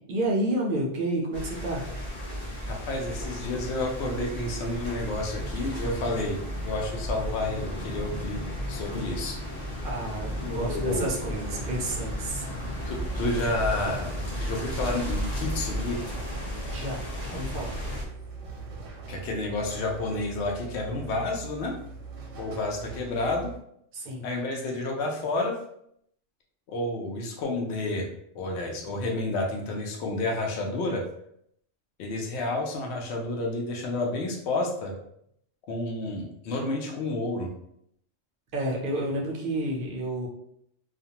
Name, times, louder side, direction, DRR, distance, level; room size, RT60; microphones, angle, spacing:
voice 1, 0.1-1.9 9.8-12.4 16.7-17.8 23.9-24.2 38.5-40.3, right 1 dB, 60° right, -2 dB, 0.6 m, -30 dB
sound 1, 1.3-18.0, equal, 40° left, 0.8 m, -34 dB
voice 2, 2.7-8.4 8.7-9.4 10.4-11.1 12.8-14.1 14.4-16.0 19.1-21.7 22.4-23.5 24.2-25.6 26.7-31.0 32.0-34.9 35.7-37.5, left 2 dB, 65° left, 1 dB, 0.8 m, -30 dB
sound 2, 11.4-23.6, right 4 dB, 90° right, 1.0 m, -42 dB
2.4 x 2.2 x 2.8 m, 0.72 s
omnidirectional pair, 1.3 m